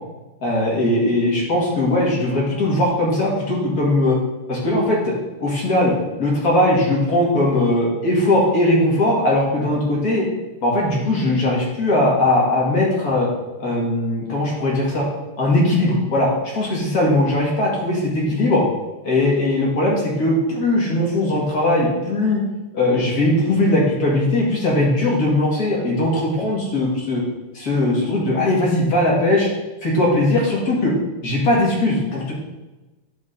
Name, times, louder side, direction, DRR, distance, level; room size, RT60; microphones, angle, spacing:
voice 1, 0.4-4.2 4.5-5.1 5.4-10.2 10.6-13.3 13.6-15.1 15.4-16.3 16.6-18.6 19.0-22.4 22.7-27.2 27.5-29.5 29.8-30.9 31.2-32.3, left 1 dB, 45° left, -4 dB, 2.3 m, -19 dB
11.0 x 3.8 x 3.8 m, 1.1 s
omnidirectional pair, 2.4 m